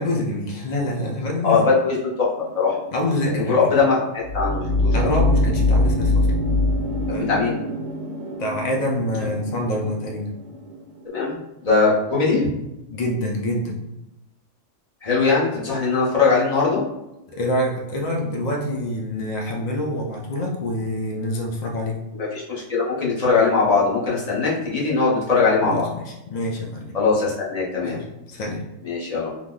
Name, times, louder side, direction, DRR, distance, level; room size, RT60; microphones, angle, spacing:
voice 1, 0.0-1.6 2.9-3.7 4.9-6.3 7.1-7.4 8.4-10.3 12.9-13.8 17.3-22.0 25.6-27.0 27.8-28.6, left 1 dB, 85° left, 0 dB, 0.3 m, -26 dB
voice 2, 1.4-2.3 2.6-2.7 3.4-4.0 4.3-4.9 7.1-7.6 9.2-9.3 11.1-12.5 15.0-16.8 22.1-25.9 26.9-28.0 28.8-29.3, left 4 dB, 35° left, -5 dB, 0.7 m, -20 dB
sound 1, 2.4-11.0, left 2 dB, 60° right, 0.9 m, -24 dB
2.9 x 2.0 x 3.6 m, 0.93 s
omnidirectional pair, 1.3 m